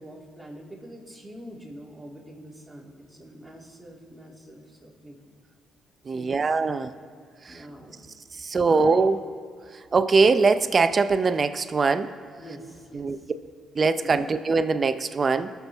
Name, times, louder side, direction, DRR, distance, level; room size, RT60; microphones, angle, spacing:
voice 1, 0.0-5.2 6.0-6.6 7.5-8.0 8.6-9.1 12.4-13.3 13.9-14.3, right 1 dB, 10° right, -4 dB, 2.7 m, -44 dB
voice 2, 6.1-6.9 7.5-7.6 8.4-9.2 9.9-12.1 13.0-13.2 13.8-15.5, right 4 dB, 40° right, 11 dB, 0.6 m, -22 dB
18.5 x 7.0 x 3.5 m, 2.2 s
cardioid pair, 90°, 0 cm